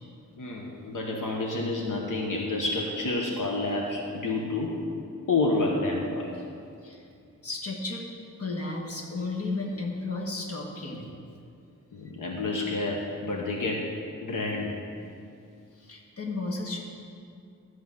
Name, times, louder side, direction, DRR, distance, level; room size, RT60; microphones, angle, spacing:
voice 1, 0.4-4.8 5.3-6.4 11.9-13.9 14.2-14.8, left 2 dB, 80° left, 0 dB, 1.2 m, -29 dB
voice 2, 7.4-8.1 8.4-11.1 15.7-16.8, left 3 dB, 50° left, -1 dB, 1.5 m, -33 dB
12.5 x 5.0 x 7.4 m, 2.4 s
wide cardioid pair, 165°, 31 cm